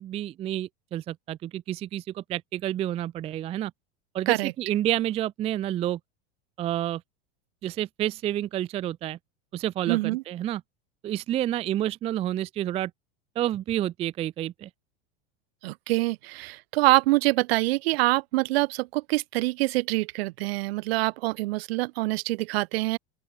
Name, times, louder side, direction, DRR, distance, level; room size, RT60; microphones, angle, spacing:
voice 1, 0.0-3.7 4.1-6.0 6.6-7.0 7.6-9.2 9.5-10.6 11.0-12.9 13.4-14.7, right 12 dB, 20° right, 0.3 m, -29 dB
voice 2, 9.9-10.2 15.6-23.0, right 21 dB, 70° right, 2.5 m, -25 dB
open air
supercardioid pair, 140°, 31 cm